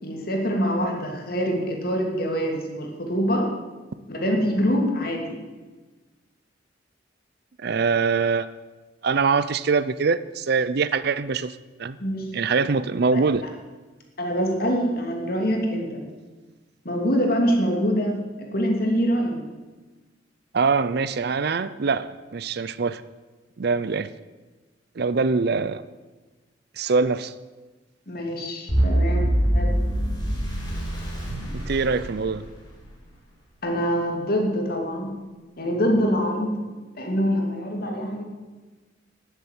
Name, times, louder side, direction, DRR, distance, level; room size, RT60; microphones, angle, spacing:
voice 1, 0.0-3.5 4.1-5.4 12.0-12.3 13.1-13.2 14.2-16.0 16.8-18.2 18.5-19.4 28.1-29.3 29.5-29.7 33.6-35.2 35.6-36.6 36.9-38.2, equal, 50° left, 2.8 m, -24 dB
voice 2, 7.6-8.5 9.0-12.0 12.3-13.4 20.5-23.0 23.6-24.1 25.0-25.8 26.8-27.3 31.5-32.4, right 4 dB, 55° right, 0.5 m, -23 dB
sound 1, 28.7-32.8, right 1 dB, 20° left, 5.5 m, -24 dB
12.5 x 8.1 x 9.3 m
head